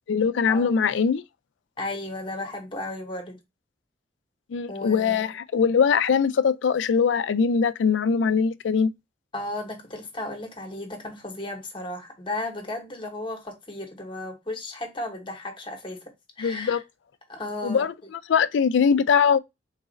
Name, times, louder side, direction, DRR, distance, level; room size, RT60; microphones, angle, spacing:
voice 1, 0.1-1.2 4.5-8.9 16.4-16.8 17.6-17.9 18.3-19.4, left 6 dB, 85° left, 0.4 m, -21 dB
voice 2, 1.8-3.4 4.7-5.3 9.3-16.0 16.4-16.8 17.3-17.9, left 2 dB, 30° left, 1.0 m, -34 dB
3.9 x 2.5 x 3.9 m
head